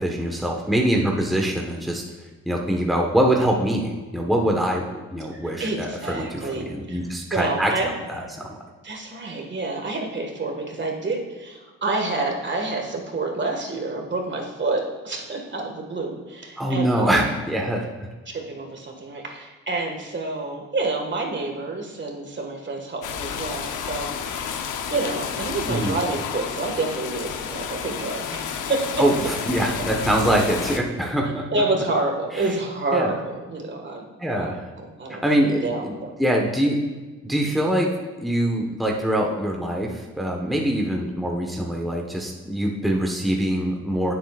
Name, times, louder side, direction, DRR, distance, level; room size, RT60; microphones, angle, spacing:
voice 1, 0.0-2.0 2.5-7.9 8.4-8.5 16.6-18.1 25.7-26.0 29.0-31.5 32.4-32.5 32.9-33.1 34.2-34.6 35.2-35.9 36.2-36.8 37.2-37.9 38.2-44.1, right 1 dB, ahead, -1 dB, 1.3 m, -23 dB
voice 2, 5.3-7.0 7.3-7.9 8.8-17.2 18.3-29.0 31.5-34.0 34.3-34.5 34.8-36.2, right 2 dB, 40° right, 2 dB, 1.9 m, -28 dB
sound 1, 23.0-30.8, left 7 dB, 80° left, 0.9 m, -31 dB
15.5 x 7.8 x 2.5 m, 1.3 s
cardioid pair, 90°, 30 cm